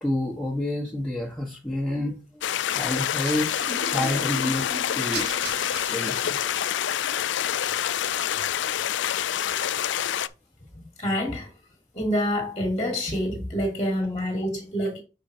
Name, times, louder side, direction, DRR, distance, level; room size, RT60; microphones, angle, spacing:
voice 1, 0.0-4.7 4.9-5.3 5.9-6.4 14.8-14.9, left 1 dB, 5° left, 1.3 m, -29 dB
sound 1, 2.4-10.3, left 10 dB, 80° left, 0.4 m, -27 dB
sound 2, 3.0-6.9, right 3 dB, 65° right, 1.9 m, -37 dB
voice 2, 10.8-11.5 11.9-15.0, equal, 25° left, 1.8 m, -27 dB
6.5 x 5.0 x 4.3 m
head